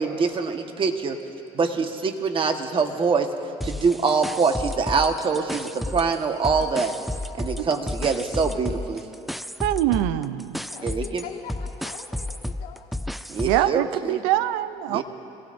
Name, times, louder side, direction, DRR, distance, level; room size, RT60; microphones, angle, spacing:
voice 1, 0.0-1.2 1.6-3.3 3.6-6.9 7.4-9.0 10.8-11.2 13.3-14.3 14.9-15.0, right 5 dB, 35° right, 5 dB, 1.4 m, -24 dB
sound 1, 3.6-6.2 6.4-13.7, left 1 dB, ahead, 0.4 m, -32 dB
voice 2, 9.6-10.6 13.4-15.0, right 14 dB, 85° right, 14 dB, 0.6 m, -23 dB
voice 3, 10.7-12.9, left 8 dB, 80° left, 2 dB, 1.9 m, -42 dB
26.5 x 17.5 x 2.6 m, 3.0 s
supercardioid pair, 90°, 14 cm